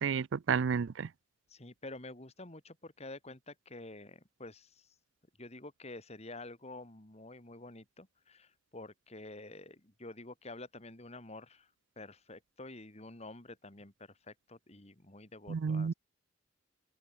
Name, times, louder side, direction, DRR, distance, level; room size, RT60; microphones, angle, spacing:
voice 1, 0.0-1.1 15.5-15.9, right 6 dB, 70° right, 0.4 m, -31 dB
voice 2, 1.5-4.9 5.4-11.7 12.0-15.9, left 2 dB, 35° left, 2.8 m, -49 dB
head